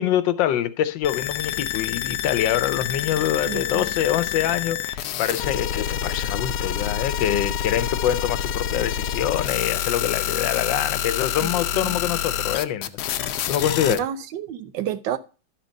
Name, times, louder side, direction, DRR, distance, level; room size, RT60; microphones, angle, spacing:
voice 1, 0.0-14.1, left 11 dB, 85° left, 1.4 m, -25 dB
sound 1, 1.0-14.0, left 10 dB, 70° left, 1.0 m, -27 dB
voice 2, 3.4-3.9 11.4-12.0 13.9-15.2, right 10 dB, 85° right, 1.4 m, -30 dB
12.0 x 4.5 x 5.1 m
omnidirectional pair, 2.0 m